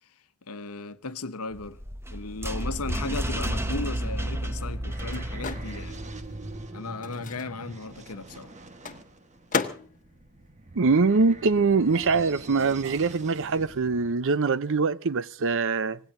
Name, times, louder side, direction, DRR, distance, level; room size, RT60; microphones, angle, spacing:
voice 1, 0.5-1.8 2.1-6.0 6.7-8.5, left 3 dB, 80° left, 1.1 m, -36 dB
sound 1, 1.5-6.7, right 1 dB, 10° right, 1.0 m, -32 dB
sound 2, 3.7-14.1, right 2 dB, 35° right, 1.3 m, -44 dB
Microwave oven, 4.2-11.7 12.0-13.9, left 5 dB, 35° left, 1.4 m, -38 dB
voice 2, 10.8-16.0, right 4 dB, 60° right, 0.7 m, -23 dB
26.5 x 18.0 x 2.7 m
head